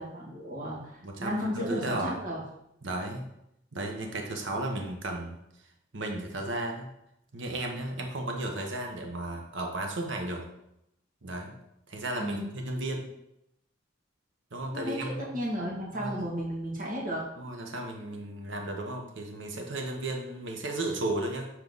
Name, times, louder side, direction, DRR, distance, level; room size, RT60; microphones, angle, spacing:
voice 1, 0.0-2.4 12.2-12.5 14.7-17.2, equal, 45° right, -4 dB, 2.1 m, -34 dB
voice 2, 1.0-2.2 2.8-3.3 3.7-5.4 5.9-6.9 7.3-10.4 11.2-11.5 11.9-13.1 14.5-15.4 15.9-16.3 17.4-21.5, right 1 dB, 70° right, 2 dB, 1.0 m, -34 dB
7.1 x 4.5 x 4.0 m, 0.81 s
head